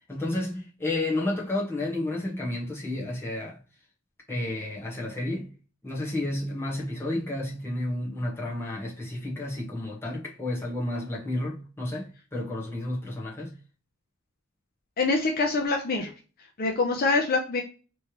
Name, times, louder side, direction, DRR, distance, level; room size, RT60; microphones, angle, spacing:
voice 1, 0.1-3.6 4.3-5.5 5.8-13.6, left 1 dB, 10° left, 1.1 m, -31 dB
voice 2, 15.0-16.1 16.6-17.6, left 3 dB, 50° left, 0.6 m, -25 dB
3.2 x 3.1 x 2.9 m
head